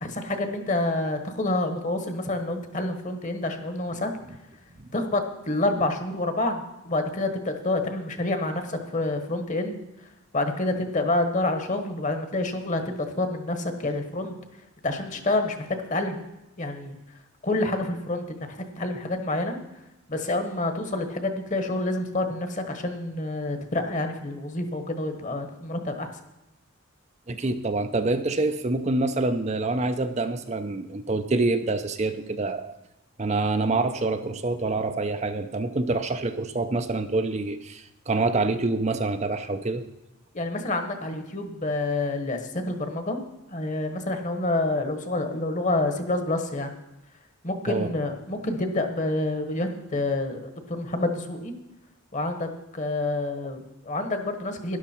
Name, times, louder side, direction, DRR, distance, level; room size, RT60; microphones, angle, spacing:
voice 1, 0.0-4.1 4.9-9.8 10.3-14.3 14.8-16.2 16.6-17.0 17.4-19.6 20.1-26.1 40.3-43.2 43.5-46.7 47.4-51.5 52.1-54.8, left 2 dB, 35° left, 7 dB, 1.3 m, -28 dB
voice 2, 27.3-32.7 33.2-39.8 47.7-47.9, right 2 dB, 30° right, 8 dB, 0.5 m, -26 dB
12.5 x 11.0 x 4.5 m, 0.95 s
head